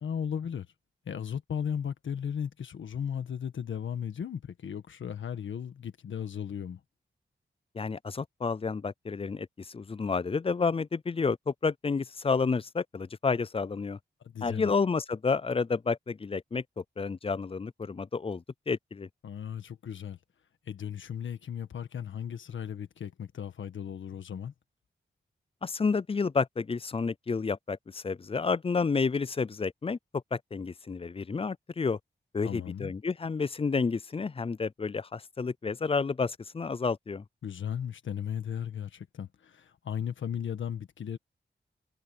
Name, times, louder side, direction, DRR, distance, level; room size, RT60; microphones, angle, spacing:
voice 1, 0.0-0.7 1.1-6.8 14.2-14.7 19.2-20.2 20.7-24.5 32.4-32.9 37.4-41.2, left 8 dB, 85° left, 1.6 m, -36 dB
voice 2, 7.7-14.0 14.4-19.1 25.6-32.0 32.3-37.2, left 4 dB, 30° left, 0.5 m, -30 dB
cardioid pair, 50°, 19 cm